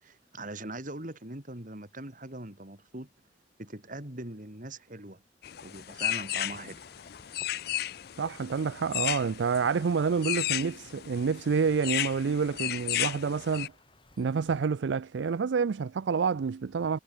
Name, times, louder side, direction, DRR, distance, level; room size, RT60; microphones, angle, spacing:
voice 1, 0.0-3.1 3.6-5.2 5.6-6.8, right 2 dB, 45° right, 3.2 m, -41 dB
sound 1, 5.4-13.7, left 13 dB, 55° left, 0.4 m, -34 dB
sound 2, 6.0-14.6, left 2 dB, 25° left, 3.7 m, -60 dB
voice 2, 8.2-13.7 14.2-17.0, right 5 dB, 75° right, 0.4 m, -28 dB
head